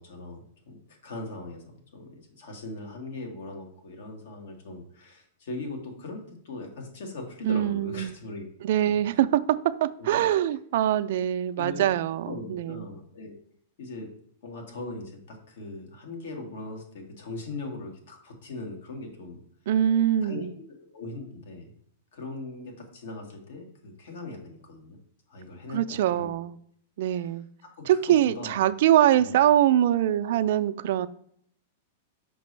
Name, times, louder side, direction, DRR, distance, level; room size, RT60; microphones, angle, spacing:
voice 1, 0.0-1.6 1.9-2.1 2.4-8.4 8.8-9.2 10.0-10.2 11.1-11.2 11.5-11.8 12.2-13.4 13.8-14.1 14.4-19.4 20.2-20.5 20.9-21.7 22.1-25.0 25.3-26.3 27.1-27.3 27.8-28.6 29.2-29.4, left 2 dB, 75° left, 3 dB, 1.6 m, -40 dB
voice 2, 7.4-8.2 8.6-12.8 19.7-20.5 25.7-26.6 27.0-27.5 27.9-31.1, right 11 dB, 65° right, 12 dB, 0.3 m, -23 dB
5.9 x 5.3 x 3.2 m, 0.64 s
hypercardioid pair, 135°, 0 cm